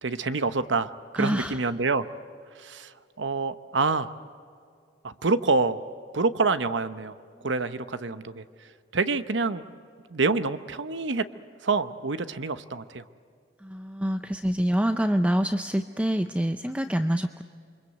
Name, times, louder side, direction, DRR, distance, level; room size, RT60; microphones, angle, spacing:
voice 1, 0.0-2.1 2.6-2.9 3.2-4.1 5.0-5.8 6.1-7.1 7.4-8.4 8.9-9.7 10.1-11.3 11.6-13.0, right 3 dB, 75° right, 12 dB, 0.9 m, -27 dB
voice 2, 1.2-1.6 8.1-8.4 13.6-17.4, equal, 5° right, 8 dB, 0.5 m, -26 dB
28.5 x 24.0 x 8.0 m, 2.4 s
head